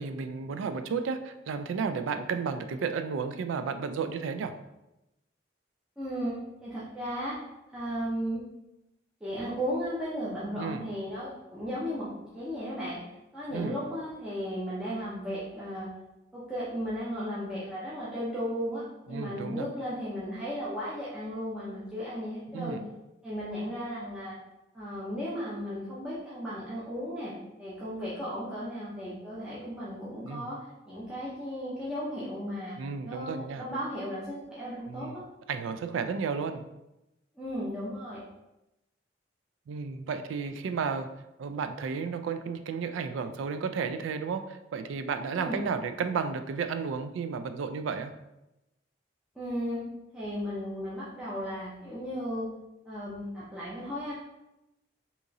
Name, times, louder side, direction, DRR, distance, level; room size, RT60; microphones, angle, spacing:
voice 1, 0.0-4.5 10.6-10.9 13.5-13.8 19.1-19.7 22.5-22.8 30.2-30.5 32.8-33.7 34.9-35.2 35.5-36.6 39.7-41.1 41.4-48.1, right 5 dB, 85° right, 9 dB, 0.3 m, -33 dB
voice 2, 6.0-6.3 6.6-7.3 7.7-8.4 9.2-12.1 12.3-13.0 13.3-15.9 16.3-22.8 23.2-24.4 24.7-27.3 27.6-30.6 30.9-32.8 33.1-35.2 37.4-38.2 45.3-45.6 49.4-49.8 50.1-52.5 52.9-54.1, equal, 5° right, -10 dB, 0.6 m, -35 dB
3.6 x 2.9 x 2.6 m, 0.94 s
head